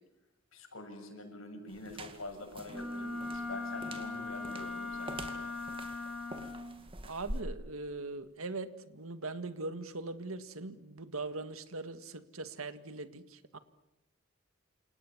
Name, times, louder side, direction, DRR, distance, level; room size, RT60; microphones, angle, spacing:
voice 1, 0.5-5.6, left 2 dB, 75° left, 5 dB, 7.1 m, -46 dB
sound 1, 1.7-7.4, right 1 dB, 25° right, 2.3 m, -46 dB
Wind instrument woodwind instrument, 2.7-6.7, left 3 dB, ahead, 4.7 m, -39 dB
voice 2, 7.0-13.6, right 3 dB, 80° right, 11 dB, 1.9 m, -41 dB
28.5 x 28.5 x 7.4 m, 0.89 s
head